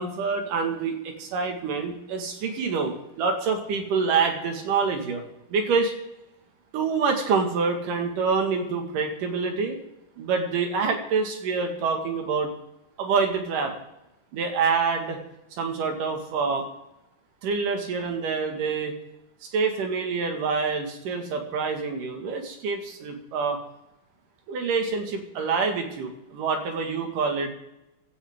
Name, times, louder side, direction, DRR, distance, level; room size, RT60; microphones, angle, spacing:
voice 1, 0.0-5.2 5.5-5.9 6.7-9.8 10.2-12.5 13.0-13.7 14.3-15.2 15.6-16.7 17.4-19.0 19.5-23.6 24.5-27.5, right 5 dB, 80° right, 4 dB, 3.4 m, -26 dB
15.5 x 14.0 x 3.6 m, 0.92 s
omnidirectional pair, 3.7 m